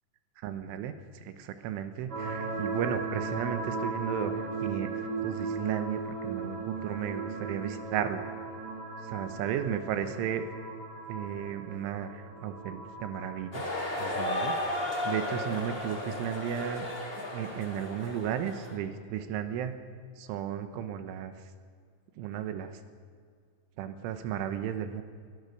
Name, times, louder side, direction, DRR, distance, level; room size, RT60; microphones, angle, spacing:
voice 1, 0.4-8.3 9.0-10.5 11.1-13.7 14.0-14.6 15.1-16.9 17.2-19.8 20.2-21.3 22.2-22.8 23.8-25.0, right 9 dB, 80° right, 9 dB, 3.5 m, -34 dB
sound 1, 2.1-18.7, right 4 dB, 35° right, 4.9 m, -38 dB
sound 2, 13.5-18.7, left 1 dB, 15° left, 2.1 m, -34 dB
22.5 x 17.5 x 6.6 m, 2.1 s
omnidirectional pair, 5.7 m